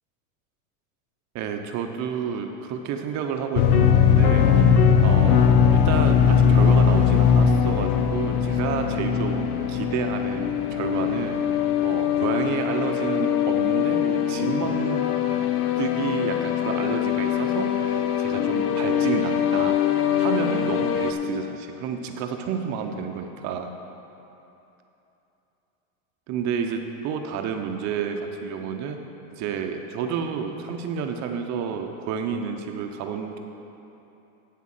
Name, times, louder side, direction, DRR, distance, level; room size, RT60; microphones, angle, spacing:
voice 1, 1.3-4.5 5.0-15.1 15.8-19.8 20.2-23.7 26.3-29.0 29.3-33.4, right 6 dB, 40° right, 5 dB, 0.7 m, -30 dB
sound 1, 3.5-21.1, left 8 dB, 90° left, 0.8 m, -21 dB
8.3 x 6.2 x 7.4 m, 3.0 s
supercardioid pair, 135°, 44 cm